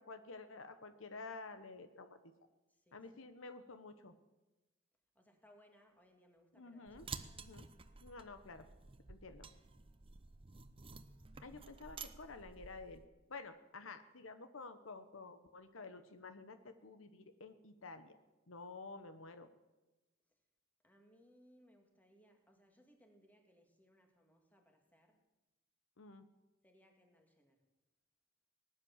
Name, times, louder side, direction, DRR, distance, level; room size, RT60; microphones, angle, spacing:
voice 1, 0.0-2.2 2.9-4.1 6.6-7.1 7.3-7.7 8.0-8.7 9.1-9.5 11.4-13.0 13.3-18.2 18.5-19.5 26.0-26.2, left 3 dB, 80° left, 9 dB, 1.1 m, -51 dB
voice 2, 2.7-3.3 5.1-7.3 20.8-25.2 26.6-27.6, equal, 10° left, 3 dB, 2.2 m, -68 dB
sound 1, 6.9-13.1, right 5 dB, 30° right, 0.7 m, -52 dB
19.0 x 9.8 x 7.3 m, 1.1 s
head